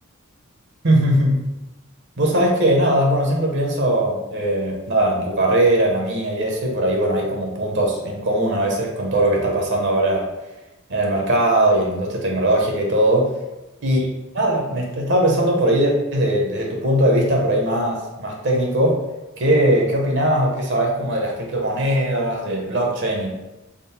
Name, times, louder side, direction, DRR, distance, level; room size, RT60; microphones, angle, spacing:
voice 1, 0.8-1.5 2.2-10.3 10.9-13.3 13.8-14.0 14.3-19.0 19.4-23.3, right 1 dB, 55° right, 0 dB, 0.7 m, -20 dB
3.7 x 2.0 x 4.1 m, 1.0 s
head